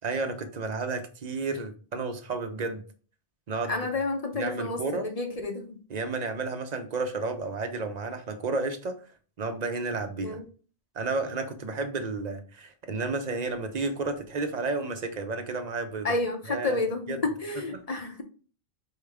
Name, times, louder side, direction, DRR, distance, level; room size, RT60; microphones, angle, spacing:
voice 1, 0.0-2.8 3.5-3.9 4.3-5.1 5.9-9.0 9.4-10.4 10.9-16.1 16.5-16.8 17.1-17.2 17.7-17.8, right 3 dB, 45° right, 0.7 m, -32 dB
voice 2, 3.7-5.8 10.2-10.4 16.0-18.2, left 3 dB, 40° left, 0.7 m, -30 dB
4.7 x 3.4 x 3.4 m
omnidirectional pair, 1.1 m